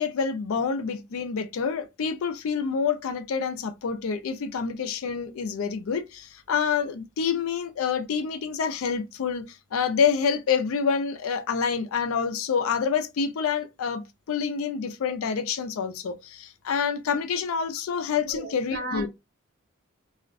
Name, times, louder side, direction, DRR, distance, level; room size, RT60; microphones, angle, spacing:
voice 1, 0.0-19.1, left 6 dB, 70° left, 0.4 m, -27 dB
voice 2, 18.2-19.1, right 2 dB, 45° right, 0.5 m, -35 dB
2.3 x 2.0 x 2.5 m
head